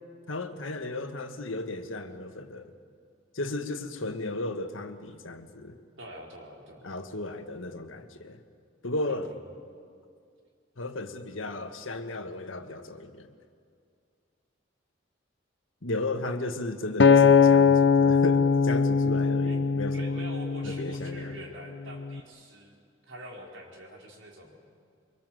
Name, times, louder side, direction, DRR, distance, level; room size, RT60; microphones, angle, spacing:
voice 1, 0.3-2.7 3.3-5.8 6.8-8.4 8.8-9.4 10.8-13.3 15.8-20.2 20.6-21.4, left 2 dB, 90° left, 7 dB, 1.6 m, -35 dB
voice 2, 6.0-7.0 9.1-9.4 19.5-19.6 19.9-22.8 23.1-24.6, right 1 dB, 80° right, 0 dB, 4.1 m, -45 dB
Acoustic guitar, 17.0-21.3 21.9-22.2, left 5 dB, 60° left, 0.7 m, -21 dB
24.0 x 23.5 x 7.7 m, 2.3 s
head